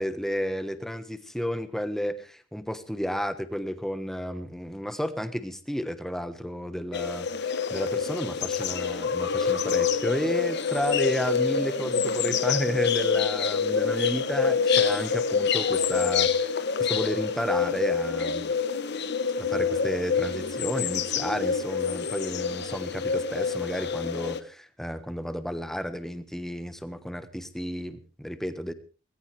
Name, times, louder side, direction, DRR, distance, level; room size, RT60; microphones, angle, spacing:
voice 1, 0.0-18.6 19.4-28.7, equal, ahead, 10 dB, 1.3 m, -32 dB
sound 1, 6.9-24.4, left 6 dB, 60° left, 1.0 m, -26 dB
19.5 x 17.0 x 3.4 m, 0.36 s
head